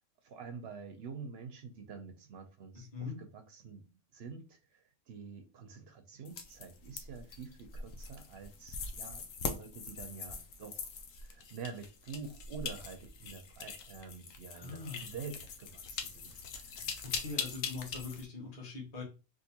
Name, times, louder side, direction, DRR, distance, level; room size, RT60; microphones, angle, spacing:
voice 1, 0.2-10.9 11.2-17.0, right 5 dB, 60° right, 0.7 m, -47 dB
voice 2, 2.7-3.2 14.5-15.0 17.0-19.0, left 4 dB, 30° left, 1.0 m, -42 dB
sound 1, 6.2-18.2, left 5 dB, 70° left, 0.9 m, -42 dB
3.6 x 2.6 x 2.8 m
omnidirectional pair, 1.5 m